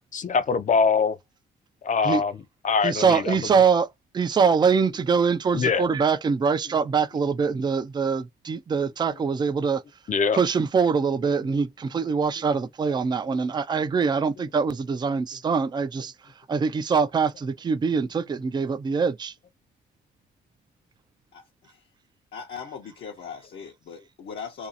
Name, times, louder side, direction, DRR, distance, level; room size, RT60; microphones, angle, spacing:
voice 1, 0.1-1.2 1.8-2.3 2.6-3.5 5.5-5.9 10.1-10.4, left 5 dB, 40° left, 0.5 m, -23 dB
voice 2, 2.8-9.8 10.3-16.1 16.5-19.3, right 5 dB, 20° right, 0.4 m, -23 dB
voice 3, 21.3-21.9 22.3-24.7, left 6 dB, 65° left, 0.8 m, -39 dB
2.6 x 2.3 x 2.5 m
cardioid pair, 90°, 20 cm